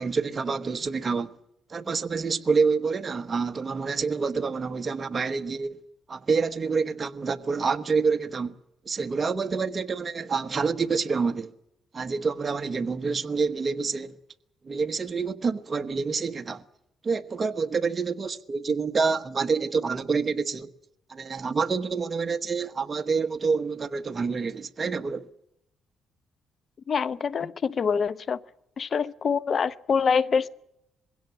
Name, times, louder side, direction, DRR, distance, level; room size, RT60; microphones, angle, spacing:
voice 1, 0.0-1.3 1.7-5.8 6.1-8.6 8.8-11.5 11.9-14.2 14.6-16.6 17.0-20.7 21.1-25.3, right 5 dB, 35° right, 1.2 m, -27 dB
voice 2, 26.9-28.4 28.8-30.6, left 6 dB, 45° left, 0.8 m, -25 dB
21.5 x 17.0 x 9.3 m
cardioid pair, 90°, 0 cm